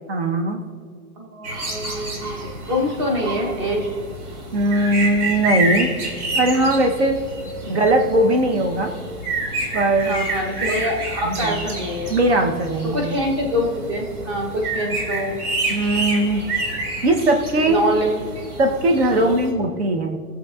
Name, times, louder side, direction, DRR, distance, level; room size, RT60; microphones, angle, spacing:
voice 1, 0.1-0.6 4.5-5.9 6.3-7.2 7.7-8.9 9.7-10.3 10.7-10.8 11.2-11.6 12.1-13.2 15.7-16.4 17.0-17.8 18.6-20.2, right 1 dB, 45° right, 4 dB, 1.0 m, -19 dB
voice 2, 1.2-3.9 7.6-7.7 10.0-12.1 12.9-15.4 17.7-18.5 19.1-19.4, equal, 20° right, 1 dB, 0.9 m, -25 dB
sound 1, 1.4-19.5, right 2 dB, 80° right, 2.7 m, -29 dB
19.5 x 7.4 x 2.4 m, 2.1 s
hypercardioid pair, 180°, 44 cm